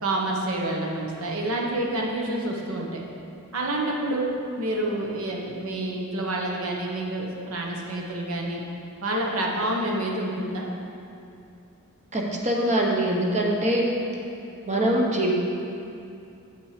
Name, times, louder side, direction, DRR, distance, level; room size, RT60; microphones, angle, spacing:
voice 1, 0.0-3.0 3.5-8.6 9.0-10.7, right 1 dB, 70° right, -1 dB, 1.2 m, -28 dB
voice 2, 12.1-13.9 14.7-15.3, right 1 dB, 35° right, -1 dB, 1.0 m, -23 dB
7.5 x 5.8 x 5.0 m, 2.6 s
head